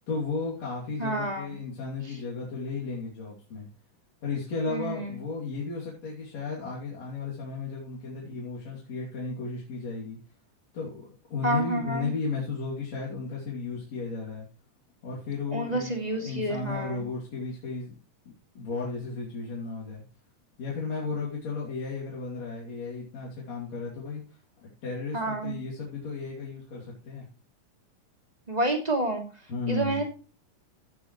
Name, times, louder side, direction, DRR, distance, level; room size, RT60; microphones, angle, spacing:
voice 1, 0.1-3.7 4.2-10.2 10.7-14.5 15.0-17.9 18.6-20.0 20.6-24.2 24.6-27.3 29.5-30.0, left 4 dB, 50° left, -5 dB, 3.9 m, -34 dB
voice 2, 1.0-1.5 4.7-5.2 11.4-12.1 15.5-17.0 25.1-25.5 28.5-29.2 29.7-30.0, right 2 dB, 15° right, 1 dB, 2.5 m, -29 dB
16.5 x 7.9 x 3.1 m, 0.34 s
omnidirectional pair, 3.9 m